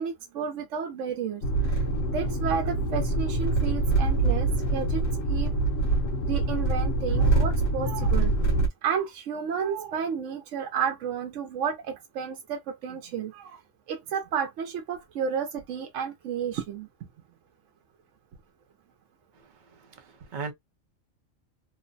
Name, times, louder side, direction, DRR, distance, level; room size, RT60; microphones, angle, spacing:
voice 1, 0.0-1.4 1.7-5.0 5.3-5.5 6.3-8.3 8.8-13.6 13.9-17.1, right 7 dB, 75° right, 0.9 m, -32 dB
sound 1, 1.4-8.7, right 2 dB, 90° left, 1.1 m, -25 dB
voice 2, 19.3-20.5, right 4 dB, 50° right, 0.7 m, -39 dB
3.0 x 2.0 x 2.5 m
omnidirectional pair, 1.3 m